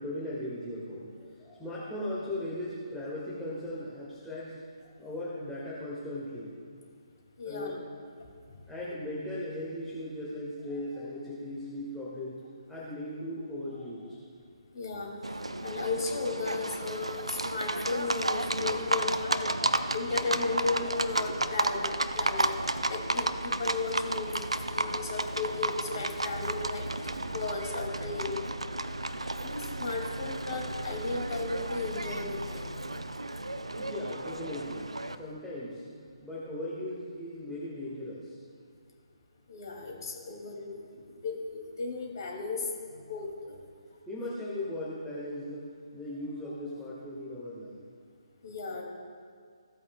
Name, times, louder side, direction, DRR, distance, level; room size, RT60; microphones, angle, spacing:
voice 1, 0.0-6.5 7.4-7.7 8.7-12.4 12.7-14.2 18.7-18.9 33.7-35.8 36.2-38.4 39.9-40.0 44.1-47.8, left 1 dB, ahead, -10 dB, 1.8 m, -38 dB
voice 2, 7.4-7.8 14.7-15.1 15.6-19.5 19.9-22.6 22.9-26.9 27.3-28.5 29.4-32.7 39.5-43.6 48.4-48.8, left 3 dB, 50° left, 0 dB, 2.6 m, -35 dB
Livestock farm animals working animals, 15.2-35.1, right 2 dB, 85° right, 0.5 m, -33 dB
16.0 x 8.4 x 2.4 m, 2.1 s
figure-of-eight pair, 140°, 3 cm